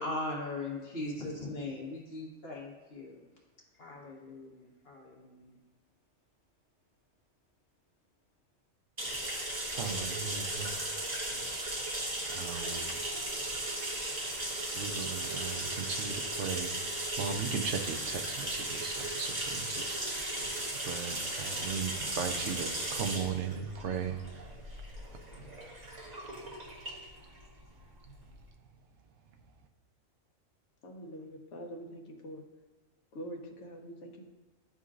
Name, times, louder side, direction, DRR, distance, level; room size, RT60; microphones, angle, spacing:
voice 1, 0.0-3.2 3.8-5.5, left 2 dB, 50° left, -3 dB, 1.5 m, -39 dB
sound 1, 9.0-28.4, right 1 dB, 35° right, 1.3 m, -36 dB
voice 2, 9.7-11.0 12.0-13.0 14.6-20.3 20.8-24.5, right 6 dB, 65° right, 6 dB, 0.9 m, -38 dB
voice 3, 30.8-32.4 33.1-34.3, equal, 65° left, 3 dB, 1.1 m, -44 dB
11.0 x 3.8 x 2.5 m, 1.2 s
omnidirectional pair, 1.3 m